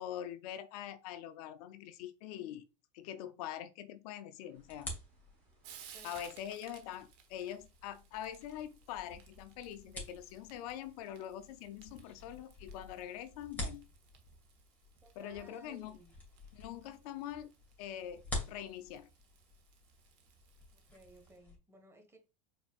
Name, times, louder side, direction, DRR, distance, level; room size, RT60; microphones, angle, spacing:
voice 1, 0.0-2.7 2.9-4.9 6.0-13.9 15.2-16.0 16.5-17.5 17.8-19.1, left 11 dB, 65° left, 0.5 m, -44 dB
Frying (food), 4.4-21.4, right 8 dB, 55° right, 1.2 m, -61 dB
sound 1, 4.5-21.6, left 1 dB, 10° left, 2.3 m, -49 dB
voice 2, 15.0-16.1 20.7-22.2, right 1 dB, 10° right, 1.3 m, -59 dB
4.4 x 4.2 x 2.3 m
hypercardioid pair, 105°, 21 cm